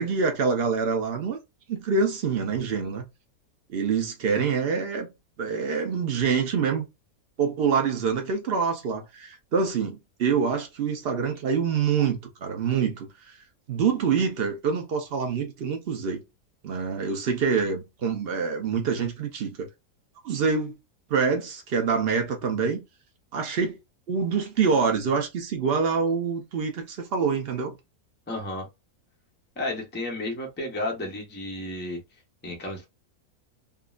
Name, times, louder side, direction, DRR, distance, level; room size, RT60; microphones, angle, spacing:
voice 1, 0.0-1.4 1.7-3.0 3.7-5.1 5.4-6.9 7.4-13.3 13.7-16.2 16.6-19.7 20.2-20.7 21.1-22.8 23.3-23.8 24.1-27.8, right 5 dB, 50° right, 0.7 m, -26 dB
voice 2, 28.3-28.7 29.6-32.0 32.4-32.8, left 1 dB, 15° left, 0.4 m, -32 dB
3.6 x 2.1 x 2.3 m
omnidirectional pair, 1.8 m